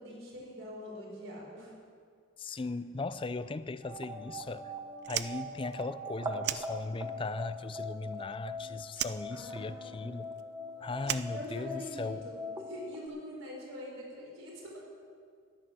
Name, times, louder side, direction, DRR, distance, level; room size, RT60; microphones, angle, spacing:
voice 1, 0.0-1.7 2.5-2.6 9.3-10.0 11.3-14.8, equal, 70° right, 4.6 m, -44 dB
voice 2, 2.4-4.7 5.1-10.3 10.8-12.3, left 3 dB, 25° left, 0.4 m, -38 dB
sound 1, 3.8-13.1, left 1 dB, 20° right, 1.0 m, -42 dB
Fire, 5.0-7.3 7.6-8.6 8.9-12.1, right 12 dB, 50° right, 0.4 m, -38 dB
13.0 x 11.5 x 6.3 m
head